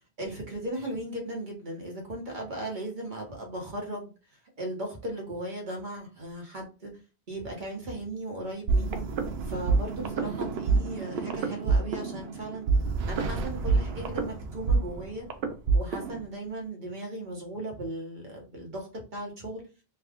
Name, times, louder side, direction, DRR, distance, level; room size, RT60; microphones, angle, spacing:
voice 1, 0.2-6.9 7.3-9.1 9.4-12.7 13.1-15.3 15.7-19.6, right 1 dB, 50° right, 0 dB, 1.1 m, -37 dB
sound 1, 8.7-16.2, right 4 dB, 80° right, 0.8 m, -27 dB
3.4 x 2.3 x 3.5 m, 0.32 s
omnidirectional pair, 1.0 m